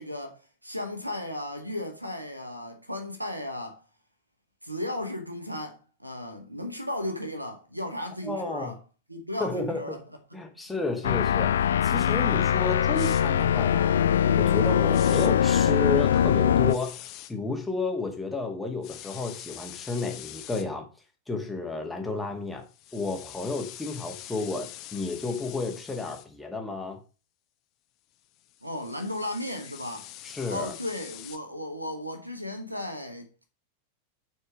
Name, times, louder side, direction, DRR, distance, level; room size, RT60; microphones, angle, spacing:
voice 1, 0.0-3.8 4.6-8.8 9.1-10.0 10.7-10.8 28.6-30.1 30.5-33.4, left 1 dB, 85° right, 1.7 m, -35 dB
voice 2, 8.2-8.7 9.4-10.0 10.3-14.0 14.4-20.9 21.3-22.6 22.9-27.0 30.2-30.7, left 3 dB, 5° left, 2.0 m, -32 dB
sound 1, 11.0-16.7, left 9 dB, 65° left, 0.4 m, -22 dB
sound 2, 13.0-13.2 14.9-15.3 16.7-17.3 18.8-20.7 22.7-26.3 28.4-31.4, left 13 dB, 40° left, 1.1 m, -44 dB
8.2 x 4.5 x 6.3 m
figure-of-eight pair, 90°, 0 cm